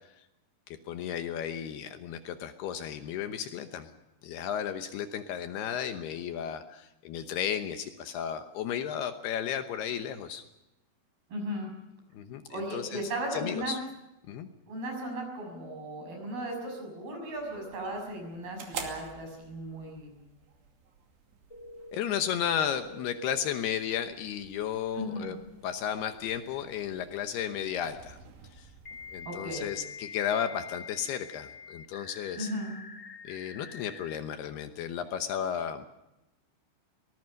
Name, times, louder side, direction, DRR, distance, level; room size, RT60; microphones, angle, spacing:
voice 1, 0.7-3.9 4.2-10.4 12.1-13.8 14.3-14.5 21.9-25.4 25.6-28.2 28.5-28.7 29.1-32.5 33.2-35.9, left 9 dB, 70° left, 8 dB, 2.8 m, -34 dB
voice 2, 11.3-11.7 12.5-13.7 14.7-20.1 24.9-25.3 29.3-29.7 32.4-32.7, right 1 dB, 55° right, 3 dB, 8.0 m, -36 dB
sound 1, 16.6-17.5 21.5-23.5 26.1-26.2 28.8-34.2, left 4 dB, 30° left, 1.7 m, -46 dB
sound 2, 17.3-29.8, right 6 dB, 70° right, 4.6 m, -49 dB
23.5 x 19.5 x 6.4 m, 0.91 s
omnidirectional pair, 5.1 m